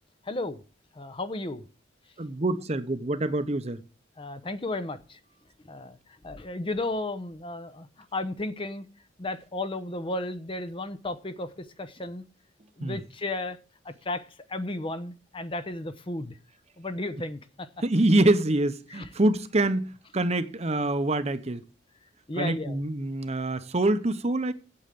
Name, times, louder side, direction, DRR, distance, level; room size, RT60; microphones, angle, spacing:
voice 1, 0.2-0.6 0.9-1.6 4.2-5.2 5.6-6.0 6.2-7.9 8.1-8.9 9.2-12.2 12.8-13.6 13.8-14.2 14.5-16.4 16.8-17.7 18.9-19.1 22.3-22.8, left 2 dB, 30° left, 0.8 m, -33 dB
voice 2, 2.2-3.8 12.8-13.0 17.8-21.6 22.4-24.5, right 2 dB, 35° right, 0.9 m, -25 dB
8.6 x 8.2 x 7.5 m
head